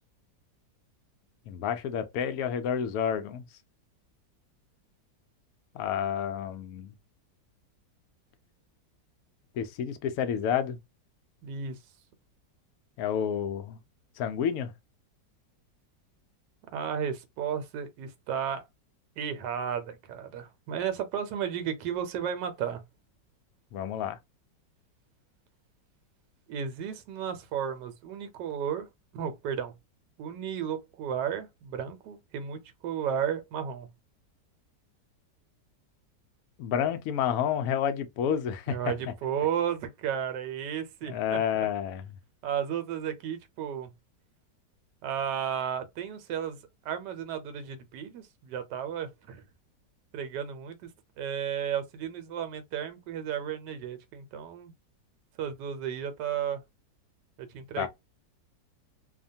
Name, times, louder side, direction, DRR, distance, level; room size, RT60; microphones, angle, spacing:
voice 1, 1.5-3.5 5.7-6.9 9.6-10.8 13.0-13.8 14.2-14.7 23.7-24.2 36.6-38.9 41.1-42.0 57.8-57.9, left 8 dB, 70° left, 0.8 m, -29 dB
voice 2, 11.4-11.8 16.7-18.6 19.2-22.8 26.5-28.9 29.1-29.7 30.2-33.9 38.7-41.4 42.4-43.9 45.0-46.6 46.8-49.4 50.1-50.9 51.2-54.7 55.4-56.6 57.4-57.9, right 8 dB, 75° right, 1.2 m, -33 dB
2.8 x 2.2 x 2.6 m
omnidirectional pair, 1.9 m